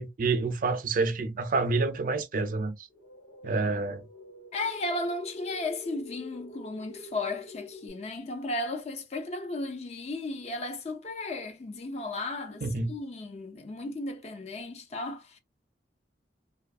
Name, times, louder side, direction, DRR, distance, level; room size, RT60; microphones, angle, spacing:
voice 1, 0.0-2.9 3.4-4.0 12.6-12.9, right 3 dB, 50° right, 0.4 m, -28 dB
sound 1, 2.9-7.9, left 2 dB, 80° left, 1.3 m, -47 dB
voice 2, 4.5-15.4, left 2 dB, 35° left, 0.4 m, -35 dB
2.6 x 2.4 x 2.3 m
head